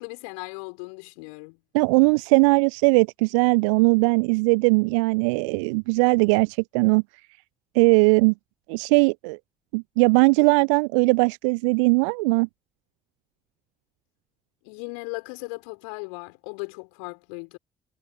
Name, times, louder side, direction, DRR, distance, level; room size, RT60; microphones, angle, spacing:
voice 1, 0.0-1.6 14.6-17.6, left 36 dB, 70° left, 5.3 m, -37 dB
voice 2, 1.7-7.0 7.7-8.3 8.7-9.4 9.7-12.5, right 29 dB, 70° right, 0.7 m, -19 dB
figure-of-eight pair, 45°, 17 cm